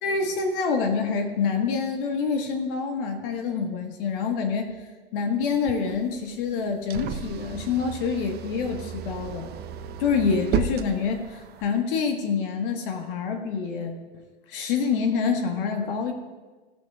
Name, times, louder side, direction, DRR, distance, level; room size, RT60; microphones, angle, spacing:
voice 1, 0.0-4.7 5.1-9.5 10.0-13.9 14.5-16.1, left 5 dB, 60° left, 4 dB, 1.5 m, -26 dB
sound 1, 5.4-11.7, right 7 dB, 35° right, 0.6 m, -34 dB
17.5 x 6.2 x 2.4 m, 1.3 s
hypercardioid pair, 85°, 31 cm